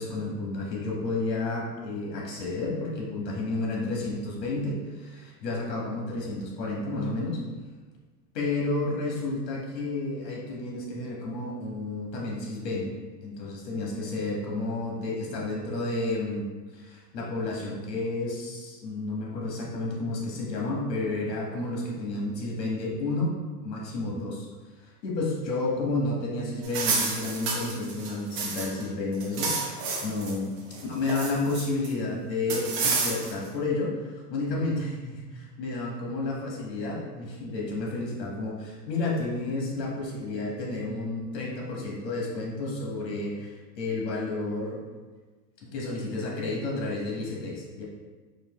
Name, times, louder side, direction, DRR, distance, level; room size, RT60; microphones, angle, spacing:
voice 1, 0.0-7.4 8.3-12.9 13.2-24.5 25.0-30.6 30.8-44.8 45.6-47.8, left 2 dB, 80° left, -2 dB, 1.4 m, -31 dB
sound 1, 26.6-28.8 29.1-30.3 30.7-31.9 32.5-33.5, right 4 dB, 30° right, 0.5 m, -30 dB
4.5 x 2.6 x 3.0 m, 1.4 s
supercardioid pair, 145°, 49 cm